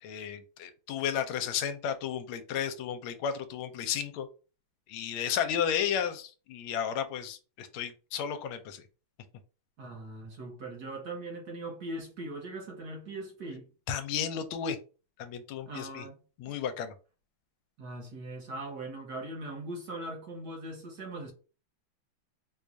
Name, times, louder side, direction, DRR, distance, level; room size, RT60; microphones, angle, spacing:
voice 1, 0.0-4.3 4.9-8.8 13.9-14.8 15.2-16.0 16.4-16.9, left 8 dB, 80° left, 1.4 m, -33 dB
voice 2, 9.8-13.7 15.6-16.2 16.5-16.6 17.8-21.3, right 2 dB, 55° right, 1.4 m, -40 dB
4.8 x 2.3 x 2.6 m
omnidirectional pair, 2.3 m